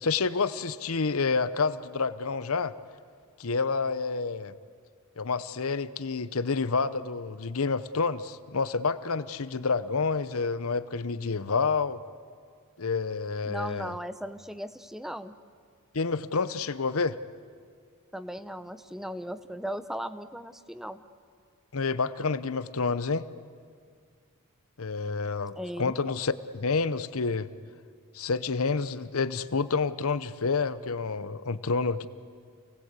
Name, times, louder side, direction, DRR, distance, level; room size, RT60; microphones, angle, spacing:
voice 1, 0.0-2.7 3.4-4.5 5.2-12.0 12.8-13.9 15.9-17.2 21.7-23.2 24.8-27.5 28.1-32.1, left 4 dB, 70° left, 14 dB, 0.8 m, -29 dB
voice 2, 13.4-15.4 18.1-21.0 25.6-25.9, equal, ahead, 12 dB, 0.7 m, -37 dB
28.5 x 19.5 x 8.2 m, 2.1 s
head